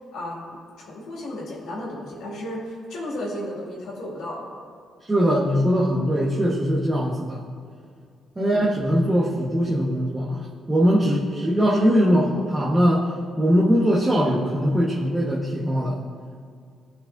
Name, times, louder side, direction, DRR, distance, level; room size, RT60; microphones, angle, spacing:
voice 1, 0.1-4.5 8.4-8.7, left 1 dB, 80° left, -4 dB, 2.1 m, -34 dB
voice 2, 5.1-7.4 8.4-16.0, equal, 15° right, -5 dB, 1.2 m, -21 dB
15.0 x 5.3 x 2.6 m, 2.3 s
cardioid pair, 90°, 0 cm